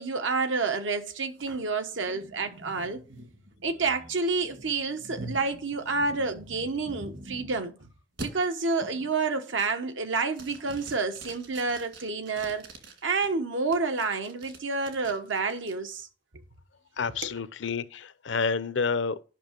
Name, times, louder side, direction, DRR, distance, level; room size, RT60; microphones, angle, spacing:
voice 1, 0.0-3.0 3.6-7.7 8.2-12.6 13.0-16.1 17.2-17.3, right 4 dB, 85° right, 1.1 m, -29 dB
sound 1, 1.4-7.7 8.2-8.3 8.8-9.1 9.5-10.0 10.3-13.3 13.7-15.7, right 1 dB, 65° right, 2.2 m, -45 dB
voice 2, 17.0-19.2, left 5 dB, 80° left, 0.6 m, -29 dB
9.2 x 5.7 x 5.2 m
head